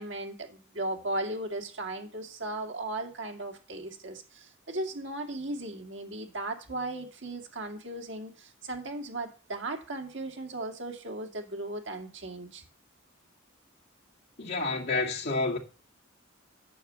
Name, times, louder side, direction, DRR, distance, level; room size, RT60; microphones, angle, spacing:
voice 1, 0.0-12.6, right 2 dB, 65° right, 2.2 m, -36 dB
voice 2, 14.4-15.6, left 3 dB, 55° left, 2.0 m, -29 dB
9.3 x 6.9 x 6.8 m
head